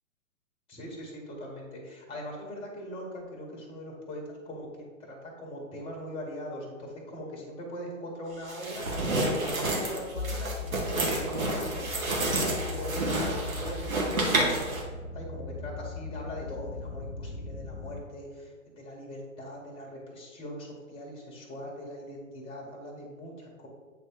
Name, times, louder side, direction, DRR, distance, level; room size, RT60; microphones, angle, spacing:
voice 1, 0.7-4.7 5.0-10.5 10.9-14.6 15.1-23.7, equal, 15° left, -1 dB, 1.5 m, -41 dB
sound 1, 8.5-14.8, right 2 dB, 80° right, 1.9 m, -29 dB
sound 2, 10.2-18.0, left 4 dB, 90° left, 0.7 m, -39 dB
8.3 x 3.3 x 4.5 m, 1.4 s
hypercardioid pair, 135°, 41 cm